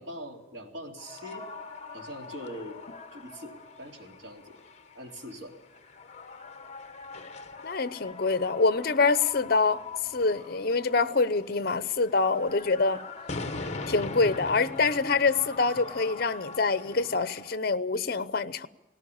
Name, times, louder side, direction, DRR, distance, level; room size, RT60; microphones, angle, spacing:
voice 1, 0.0-1.5 1.9-2.8 3.1-4.6 4.9-5.5, equal, 70° right, 3.8 m, -42 dB
sound 1, 1.0-17.6, left 3 dB, 35° left, 1.1 m, -42 dB
voice 2, 7.6-9.8 10.1-13.1 13.9-18.7, left 4 dB, 55° left, 0.8 m, -25 dB
19.0 x 17.5 x 8.8 m
head